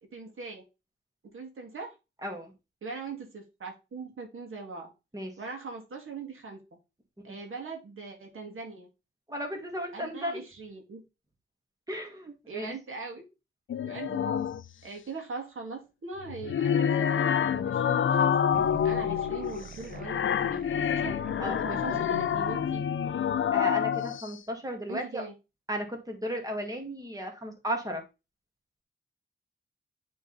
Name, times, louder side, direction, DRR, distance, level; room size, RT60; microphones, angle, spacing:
voice 1, 0.1-0.6 1.3-1.9 2.8-4.9 5.4-6.6 7.2-8.9 9.9-11.0 12.5-13.3 13.8-14.5 14.8-18.4 18.8-20.2 20.5-22.8 24.9-25.3, right 4 dB, 90° right, 2 dB, 2.1 m, -41 dB
voice 2, 2.2-2.5 5.1-5.3 7.3-7.4 9.3-10.4 11.9-12.7 21.4-22.0 23.5-25.2 25.7-28.0, equal, 15° right, 2 dB, 1.9 m, -35 dB
sound 1, 13.7-14.7 16.2-24.3, left 8 dB, 70° left, 0.4 m, -27 dB
sound 2, 18.5-23.6, right 4 dB, 45° right, 0.9 m, -45 dB
9.0 x 3.8 x 4.0 m, 0.27 s
wide cardioid pair, 85°, 21 cm